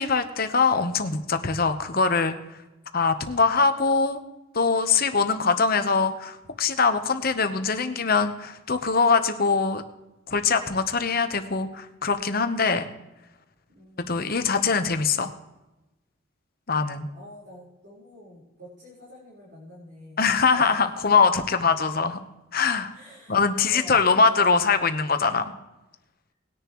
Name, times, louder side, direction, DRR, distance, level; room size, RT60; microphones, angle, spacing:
voice 1, 0.0-2.4 2.9-4.2 4.5-9.8 10.3-12.9 14.1-15.3 16.7-17.1 20.2-22.2 22.5-22.9 23.3-25.4, left 4 dB, 45° left, 8 dB, 1.0 m, -22 dB
voice 2, 13.7-14.3 16.7-20.3 20.5-20.7 22.9-25.0, equal, 55° right, -7 dB, 4.5 m, -46 dB
19.5 x 10.5 x 3.1 m, 1.0 s
head